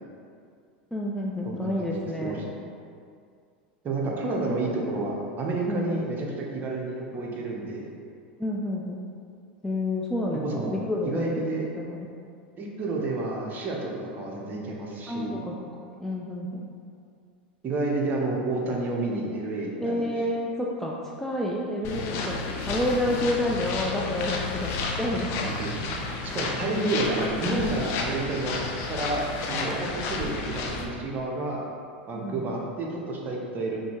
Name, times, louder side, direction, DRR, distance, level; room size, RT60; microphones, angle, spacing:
voice 1, 0.9-2.5 5.7-6.0 8.4-9.0 9.6-11.3 11.8-12.1 15.1-15.7 16.0-16.7 19.8-25.4 32.1-32.5, left 1 dB, 5° left, -3 dB, 0.4 m, -29 dB
voice 2, 1.4-1.9 2.2-2.4 3.8-7.9 10.4-10.7 11.0-11.6 12.6-15.4 17.6-20.1 25.4-25.7 26.2-31.6 32.1-33.8, right 2 dB, 35° right, -2 dB, 0.8 m, -30 dB
sound 1, 21.8-30.9, left 3 dB, 50° left, 0.6 m, -31 dB
5.3 x 2.7 x 3.0 m, 2.3 s
hypercardioid pair, 100°, 6 cm